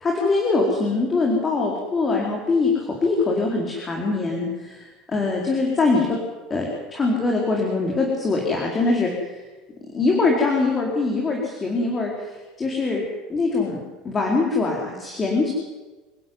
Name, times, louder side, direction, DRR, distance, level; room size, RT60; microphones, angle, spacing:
voice 1, 0.0-6.2 6.5-9.4 9.9-13.0 13.3-13.8 14.0-15.5, left 3 dB, 20° left, -1 dB, 4.3 m, -23 dB
27.5 x 12.0 x 9.5 m, 1.2 s
supercardioid pair, 145°, 0 cm